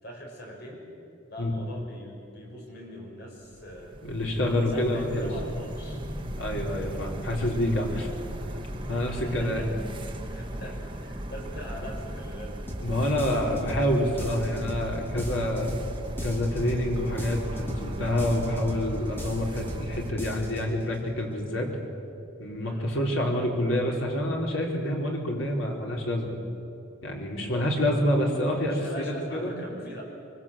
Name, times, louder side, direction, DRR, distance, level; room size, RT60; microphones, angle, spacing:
voice 1, 0.0-0.9 1.3-4.0 4.6-6.0 9.0-9.7 10.2-12.6 22.6-22.9 27.4-27.7 28.7-30.0, equal, 55° left, -1 dB, 5.5 m, -42 dB
sound 1, 3.5-20.1, equal, 25° right, 1.6 m, -37 dB
voice 2, 4.0-5.3 6.4-8.1 8.9-9.6 12.8-15.7 16.2-21.7 22.4-26.3 27.0-28.9 29.4-29.5, left 1 dB, 80° left, -1 dB, 4.4 m, -27 dB
sound 2, 12.7-12.9 13.2-13.9 14.2-14.9 15.2-15.9 16.2-16.9 17.2-17.9 18.2-18.9 19.2-19.9 20.2-20.6, equal, 10° left, 3.2 m, -36 dB
24.5 x 24.0 x 7.6 m, 2.6 s
head